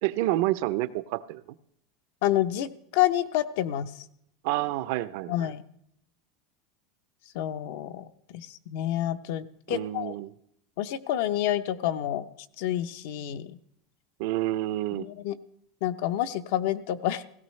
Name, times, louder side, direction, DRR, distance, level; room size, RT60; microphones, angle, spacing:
voice 1, 0.0-1.4 4.4-5.5 9.7-10.3 14.2-15.1, right 16 dB, 65° right, 15 dB, 0.5 m, -28 dB
voice 2, 2.2-3.9 5.3-5.6 7.3-8.1 8.3-10.1 10.8-12.2 12.6-13.6 15.0-15.4 15.8-17.2, left 12 dB, 70° left, 11 dB, 0.7 m, -28 dB
17.0 x 16.0 x 3.2 m, 0.72 s
supercardioid pair, 145°, 0 cm